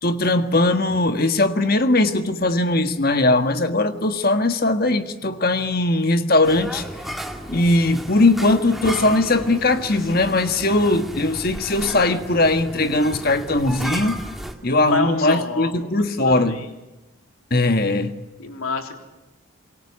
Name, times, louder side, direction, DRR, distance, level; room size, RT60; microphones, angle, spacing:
voice 1, 0.0-6.8 7.5-14.2 14.6-16.6 17.5-18.2, left 2 dB, 45° left, 1.6 m, -19 dB
sound 1, 6.4-14.5, equal, ahead, 2.0 m, -34 dB
voice 2, 14.9-16.6 18.4-19.0, left 4 dB, 90° left, 3.6 m, -28 dB
27.0 x 22.5 x 8.3 m
head